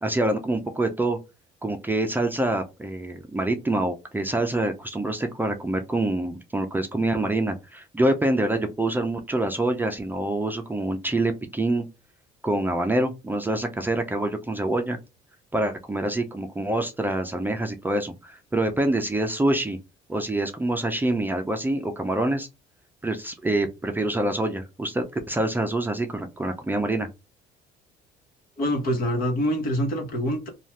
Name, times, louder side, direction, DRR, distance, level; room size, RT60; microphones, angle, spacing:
voice 1, 0.0-1.2 1.6-11.8 12.4-15.0 15.5-19.8 20.1-22.5 23.0-27.1, right 1 dB, 10° right, 5 dB, 0.5 m, -26 dB
voice 2, 28.6-30.5, equal, 60° left, 2 dB, 1.2 m, -25 dB
2.6 x 2.3 x 3.2 m, 0.25 s
cardioid pair, 110°, 17 cm